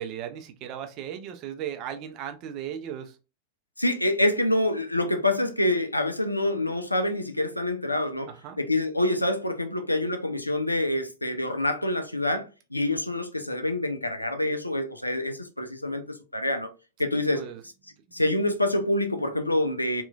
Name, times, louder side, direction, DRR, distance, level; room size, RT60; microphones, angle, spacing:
voice 1, 0.0-3.2 8.3-8.6 17.1-17.6 18.1-18.2, right 9 dB, 40° right, 0.5 m, -37 dB
voice 2, 3.8-8.3 8.6-16.7 17.0-17.4 18.1-20.0, left 1 dB, 85° left, 0.4 m, -26 dB
2.9 x 2.3 x 2.3 m
figure-of-eight pair, 90°, 0 cm